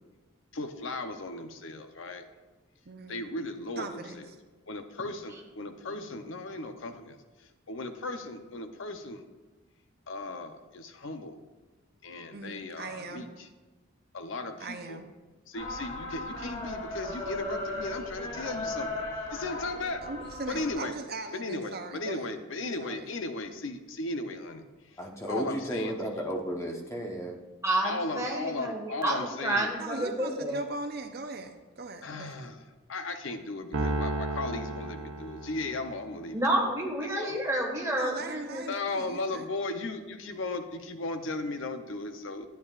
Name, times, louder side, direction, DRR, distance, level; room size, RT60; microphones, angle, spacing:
voice 1, 0.5-2.2 3.1-4.3 4.7-9.2 10.1-11.4 12.0-13.5 14.1-15.0 15.5-20.1 20.5-21.0 21.3-25.0 25.3-25.9 27.8-29.7 32.0-36.4 37.0-37.4 38.7-42.5, left 2 dB, 65° left, 7 dB, 0.7 m, -36 dB
voice 2, 2.9-3.2 3.8-4.2 12.3-13.3 14.6-15.1 20.0-22.3 22.8-23.1 29.8-32.5 38.0-39.5, right 3 dB, 50° right, 6 dB, 0.6 m, -40 dB
sound 1, 15.5-20.7, left 2 dB, 45° left, 3.0 m, -36 dB
voice 3, 25.0-27.4, equal, 15° left, 0 dB, 1.0 m, -33 dB
voice 4, 27.6-30.6 36.3-38.6, right 1 dB, 15° right, -1 dB, 1.5 m, -29 dB
Piano, 33.7-36.2, right 1 dB, 70° right, 1.0 m, -33 dB
12.5 x 9.0 x 2.4 m, 1.2 s
head